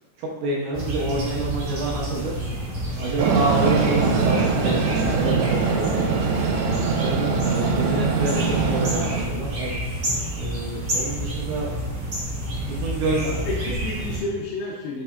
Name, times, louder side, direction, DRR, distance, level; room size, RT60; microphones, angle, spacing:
voice 1, 0.2-2.4 3.0-6.4 7.0-9.8 10.3-11.7 12.4-13.2, right 2 dB, 75° right, -4 dB, 1.9 m, -28 dB
sound 1, 0.7-14.2, equal, 45° right, 1.1 m, -29 dB
Train, 3.2-9.2, right 5 dB, 90° right, 3.0 m, -22 dB
voice 2, 13.2-15.0, left 2 dB, 75° left, -6 dB, 2.6 m, -30 dB
8.3 x 3.3 x 3.7 m, 1.1 s
omnidirectional pair, 4.9 m